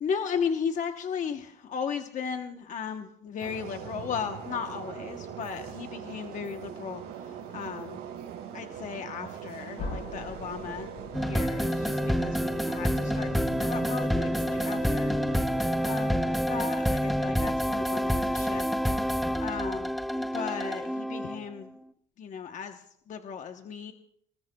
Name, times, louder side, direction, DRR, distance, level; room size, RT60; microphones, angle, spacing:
voice 1, 0.0-8.0 8.5-10.9 11.2-15.1 15.8-16.2 16.5-18.7 19.4-19.9 20.2-21.7 22.2-23.9, left 6 dB, 50° left, 6 dB, 1.0 m, -36 dB
sound 1, 3.4-16.4, right 8 dB, 85° right, 4.6 m, -41 dB
sound 2, 9.8-14.5, left 3 dB, 65° left, 4.3 m, -44 dB
sound 3, 11.1-21.6, equal, ahead, 0.5 m, -28 dB
26.0 x 19.0 x 2.3 m, 0.69 s
cardioid pair, 110°, 17 cm